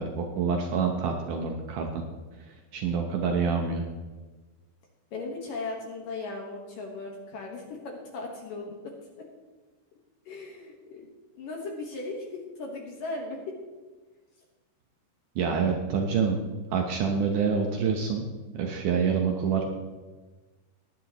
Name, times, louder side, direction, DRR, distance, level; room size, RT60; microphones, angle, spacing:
voice 1, 0.0-2.0 2.5-3.9 15.4-16.4 16.7-18.3 18.5-19.6, right 6 dB, 90° right, 2 dB, 1.8 m, -27 dB
voice 2, 5.1-8.8 10.3-11.1 11.4-13.6, left 3 dB, 65° left, 0 dB, 2.5 m, -37 dB
20.0 x 10.5 x 3.1 m, 1.3 s
omnidirectional pair, 5.2 m